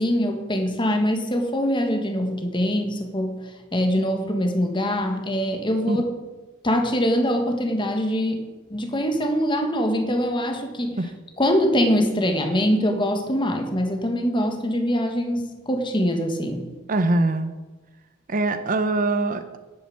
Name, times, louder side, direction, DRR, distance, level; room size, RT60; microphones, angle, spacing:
voice 1, 0.0-3.4 3.7-6.0 6.6-8.4 8.7-11.0 11.4-16.7, equal, 25° left, 4 dB, 1.7 m, -23 dB
voice 2, 16.9-17.5 18.3-19.6, right 2 dB, 40° right, 9 dB, 0.7 m, -23 dB
11.0 x 8.7 x 7.7 m, 1.2 s
head